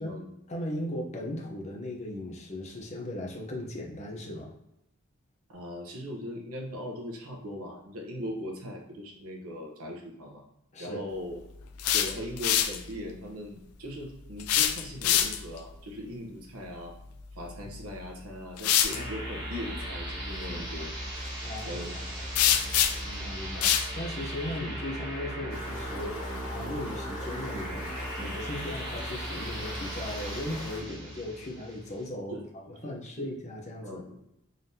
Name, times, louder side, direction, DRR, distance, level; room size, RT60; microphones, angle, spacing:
voice 1, 0.5-4.5 10.7-11.0 20.5-20.6 21.4-22.2 23.0-27.9 28.2-34.0, left 1 dB, 30° left, 0 dB, 0.7 m, -37 dB
voice 2, 5.5-10.4 10.8-11.4 11.9-16.9 17.3-20.9 21.7-22.0 22.4-22.5 32.3-32.5 32.8-33.3 33.8-34.1, left 1 dB, 90° right, 1 dB, 0.9 m, -40 dB
sound 1, 11.6-12.8 14.4-15.6 17.6-17.8 18.6-19.0 22.4-23.1 23.6-23.9, left 10 dB, 90° left, 0.4 m, -25 dB
sound 2, 18.9-32.1, equal, 60° right, 1.2 m, -37 dB
Stream, 25.5-30.8, left 1 dB, 70° left, 1.2 m, -43 dB
3.9 x 3.4 x 2.8 m, 0.85 s
head